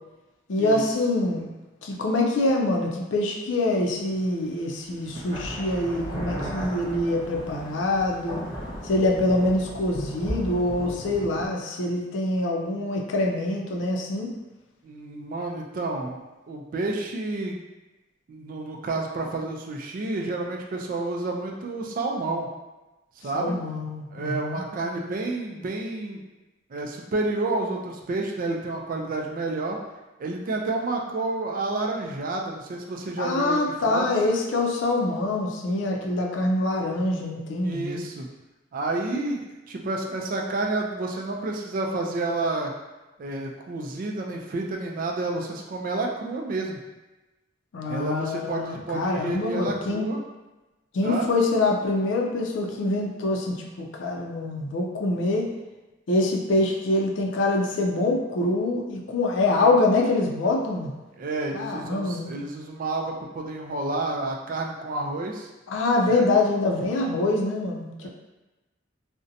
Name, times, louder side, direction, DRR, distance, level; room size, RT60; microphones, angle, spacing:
voice 1, 0.5-1.5 1.8-8.4 8.8-14.3 23.3-24.6 33.2-38.0 47.7-50.0 50.9-55.5 56.1-60.9 61.5-62.4 65.7-68.1, left 2 dB, 70° left, 0 dB, 0.4 m, -25 dB
sound 1, 4.2-4.3 5.0-11.5, equal, 25° left, 0.7 m, -35 dB
voice 2, 14.8-16.2 16.5-17.6 18.3-22.5 23.2-23.6 24.1-26.2 26.7-29.8 30.2-34.1 37.6-38.3 38.7-42.7 43.2-46.8 47.9-50.2 51.0-51.3 61.2-65.5 66.1-66.3 68.0-68.1, right 2 dB, 45° right, 1 dB, 0.3 m, -30 dB
2.6 x 2.1 x 2.6 m, 1.1 s
head